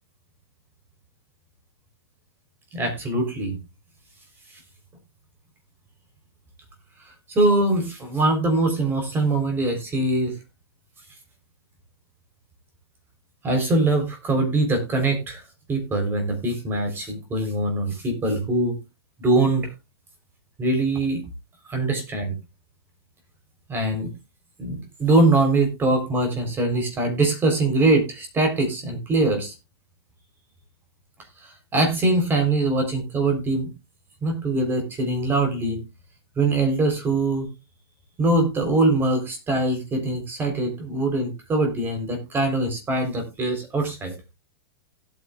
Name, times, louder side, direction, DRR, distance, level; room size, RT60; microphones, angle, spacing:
voice 1, 2.7-3.6 7.3-10.4 13.4-15.4 15.7-18.8 19.2-19.7 20.6-21.2 21.7-22.4 23.7-24.1 24.6-29.5 31.4-33.7 34.2-35.9 36.4-37.5 38.2-44.1, right 2 dB, 15° right, 5 dB, 3.7 m, -22 dB
17.0 x 9.0 x 2.3 m, 0.25 s
hypercardioid pair, 150°, 13 cm